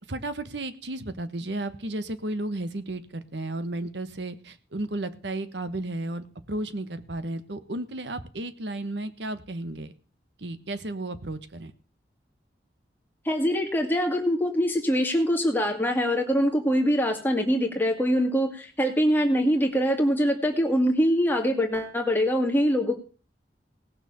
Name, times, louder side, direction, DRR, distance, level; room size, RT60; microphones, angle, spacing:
voice 1, 0.1-9.9 10.4-11.7, right 2 dB, 80° right, 12 dB, 1.2 m, -33 dB
voice 2, 13.3-22.9, equal, 10° left, 2 dB, 2.0 m, -23 dB
18.0 x 6.6 x 6.9 m, 0.38 s
head